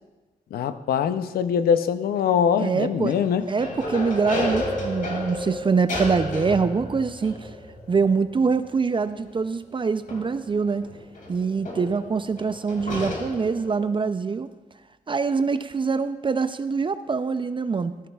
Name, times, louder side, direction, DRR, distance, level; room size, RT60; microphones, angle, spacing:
voice 1, 0.5-3.5, left 7 dB, 85° left, 12 dB, 0.6 m, -23 dB
sound 1, 1.9-2.4 3.1-13.9, left 1 dB, 60° left, 2.3 m, -33 dB
voice 2, 2.6-3.1 3.5-7.5 7.9-10.9 11.3-14.5 15.1-18.1, right 5 dB, 35° right, 12 dB, 0.4 m, -24 dB
sound 2, 4.5-9.2 9.5-9.6, left 1 dB, 5° left, 1.4 m, -40 dB
14.0 x 14.0 x 2.3 m, 1.2 s
cardioid pair, 65°, 15 cm